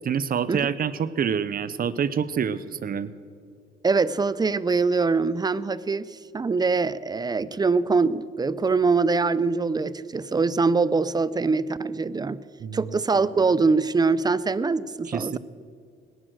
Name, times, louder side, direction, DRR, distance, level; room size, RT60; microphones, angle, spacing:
voice 1, 0.0-3.1 12.6-12.9 15.1-15.4, right 7 dB, 45° right, 15 dB, 0.8 m, -27 dB
voice 2, 3.8-12.4 12.7-15.4, right 4 dB, 20° right, 18 dB, 0.5 m, -23 dB
18.5 x 11.5 x 6.2 m, 2.3 s
cardioid pair, 90°, 20 cm